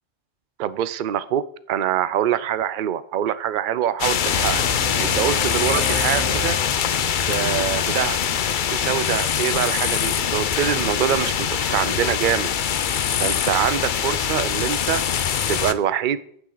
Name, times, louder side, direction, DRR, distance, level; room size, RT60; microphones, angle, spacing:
voice 1, 0.6-1.4 1.7-4.6 5.0-6.6 7.3-8.2 8.7-12.5 13.2-15.0 15.5-16.2, right 10 dB, 55° right, 16 dB, 0.7 m, -24 dB
sound 1, 4.0-15.7, left 8 dB, 55° left, 0.7 m, -23 dB
sound 2, 4.3-7.3, left 2 dB, 90° left, 1.9 m, -31 dB
11.5 x 9.1 x 3.9 m, 0.65 s
omnidirectional pair, 1.1 m